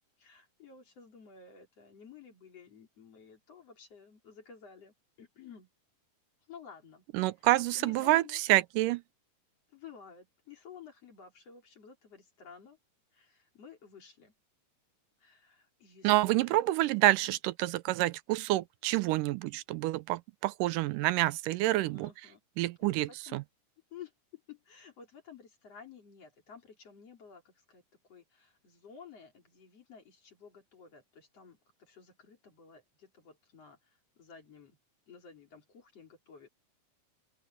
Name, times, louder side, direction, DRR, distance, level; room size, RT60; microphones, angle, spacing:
voice 1, 0.2-5.7 6.5-7.0 7.7-8.4 9.7-12.8 13.1-14.3 15.2-16.6 16.8-17.1 21.6-22.4 22.8-23.4 23.9-27.8 28.1-34.8 35.1-36.5, left 6 dB, 50° left, 4.7 m, -53 dB
voice 2, 7.1-9.0 16.0-22.1 22.6-23.4, right 17 dB, 85° right, 2.2 m, -28 dB
open air
omnidirectional pair, 3.8 m